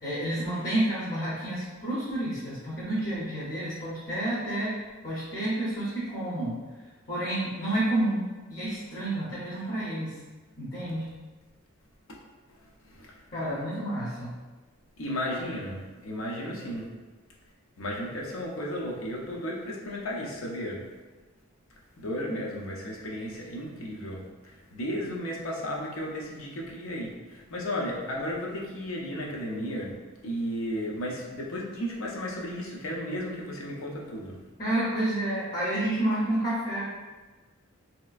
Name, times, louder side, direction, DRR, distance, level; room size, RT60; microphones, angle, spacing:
voice 1, 0.0-4.7 5.0-6.6 7.1-10.1 10.6-11.1 13.3-14.3 34.6-36.8, right 1 dB, 40° left, -9 dB, 0.8 m, -29 dB
voice 2, 15.0-16.9 17.8-20.8 22.0-29.9 30.2-34.4, equal, 70° left, -2 dB, 0.6 m, -34 dB
3.1 x 2.9 x 2.4 m, 1.3 s
head